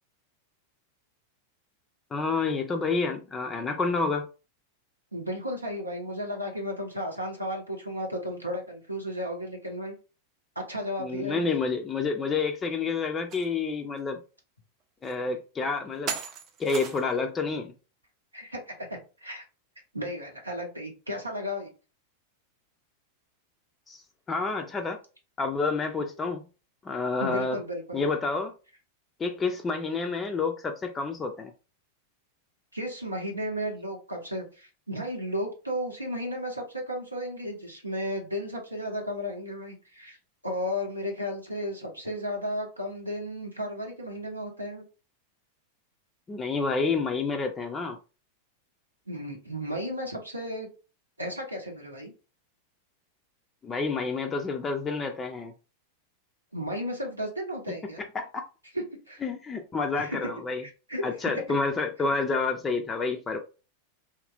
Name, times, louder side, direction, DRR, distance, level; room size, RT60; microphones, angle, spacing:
voice 1, 2.1-4.3 11.0-14.2 15.0-16.2 16.6-17.7 23.9-24.0 24.3-25.0 25.4-26.4 26.8-27.6 27.9-28.5 29.2-31.5 46.3-48.0 53.6-55.5 58.0-58.4 59.2-60.6 61.0-63.4, left 4 dB, 20° left, 0.4 m, -29 dB
voice 2, 5.1-9.9 10.6-11.5 18.3-19.4 19.9-21.7 26.0-26.1 27.2-28.0 32.7-40.2 40.4-44.8 49.1-50.7 51.2-52.1 56.5-58.0 58.7-59.2 60.0-60.2 60.6-61.3, equal, 85° right, 0.7 m, -34 dB
sound 1, 13.3-13.5 14.0-14.1 15.0-15.1 16.1-17.2, right 6 dB, 35° right, 0.5 m, -36 dB
2.8 x 2.4 x 2.4 m
figure-of-eight pair, 90°, 0 cm